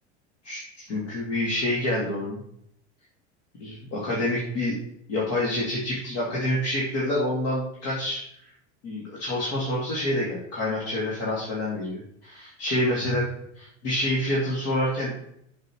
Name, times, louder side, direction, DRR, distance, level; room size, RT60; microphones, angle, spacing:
voice 1, 0.4-2.4 3.6-4.8 5.1-8.2 8.8-13.3 13.6-15.1, left 1 dB, 60° left, -6 dB, 2.4 m, -27 dB
7.7 x 6.8 x 3.1 m, 0.73 s
hypercardioid pair, 105°, 35 cm